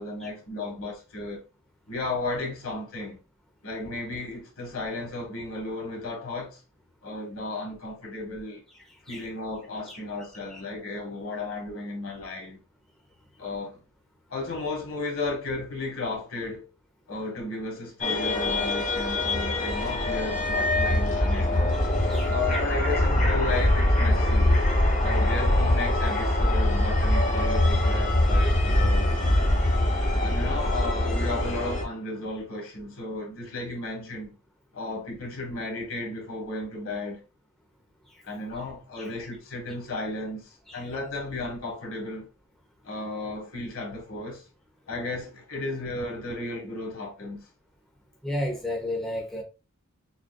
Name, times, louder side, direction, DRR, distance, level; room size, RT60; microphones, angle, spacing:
voice 1, 0.0-1.4 1.9-3.2 3.6-6.6 7.0-8.6 9.0-12.6 13.4-13.8 14.3-16.7 17.1-21.7 22.3-24.5 25.0-29.1 30.2-34.3 34.7-37.2 38.2-42.3 42.8-44.4 44.9-47.4, left 2 dB, 65° left, 1.6 m, -34 dB
voice 2, 8.9-9.3 9.9-10.0 10.5-10.6 21.3-21.4 22.1-22.3 38.9-39.1 40.7-40.9 48.2-49.4, left 1 dB, ahead, 0.7 m, -33 dB
sound 1, 18.0-31.8, left 1 dB, 35° left, 1.2 m, -23 dB
6.2 x 2.5 x 2.3 m
head